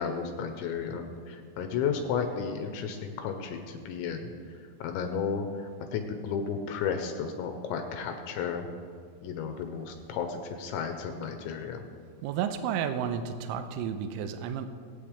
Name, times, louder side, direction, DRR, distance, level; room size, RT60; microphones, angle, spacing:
voice 1, 0.0-8.6 9.2-11.8, left 6 dB, 85° left, 5 dB, 2.9 m, -33 dB
voice 2, 12.2-14.7, right 8 dB, 85° right, 9 dB, 3.1 m, -32 dB
22.0 x 8.7 x 3.3 m, 2.2 s
omnidirectional pair, 5.8 m